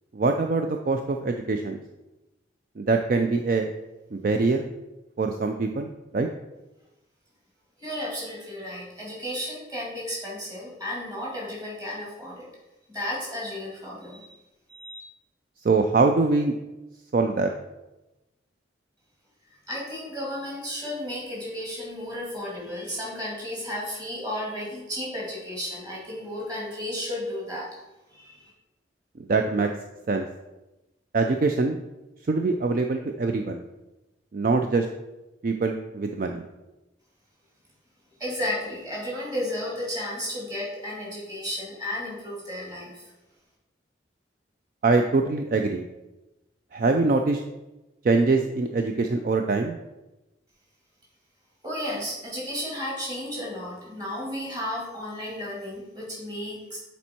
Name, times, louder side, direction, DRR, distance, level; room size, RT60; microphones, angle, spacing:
voice 1, 0.1-1.8 2.8-3.7 4.1-4.7 5.2-6.3 15.6-16.5 17.1-17.5 29.3-29.7 30.1-30.3 31.1-31.8 32.3-33.6 34.3-34.9 35.4-36.4 44.8-45.8 46.7-47.4 48.0-49.8, right 3 dB, 45° right, 5 dB, 0.4 m, -23 dB
voice 2, 7.8-12.5 12.9-14.4 14.7-15.0 19.7-27.7 28.1-28.5 38.2-43.1 51.6-56.8, left 1 dB, 20° right, -4 dB, 2.2 m, -33 dB
7.2 x 4.4 x 4.3 m, 1.0 s
head